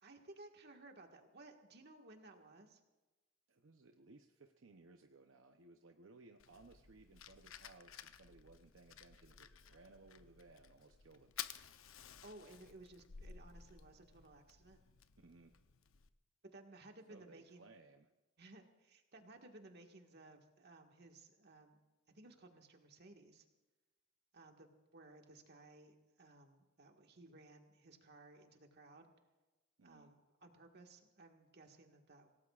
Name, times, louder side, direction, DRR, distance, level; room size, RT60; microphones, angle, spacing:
voice 1, 0.0-2.8 12.2-14.8 16.5-17.7 18.4-21.8 22.1-23.5 24.3-29.1 29.8-32.3, right 2 dB, 55° right, 3 dB, 1.7 m, -59 dB
voice 2, 3.5-11.3 15.2-15.6 17.1-18.1 29.8-30.1, right 3 dB, 75° right, 5 dB, 0.8 m, -62 dB
Fire, 6.4-16.1, left 9 dB, 90° left, 0.7 m, -54 dB
26.5 x 17.5 x 2.5 m, 1.2 s
head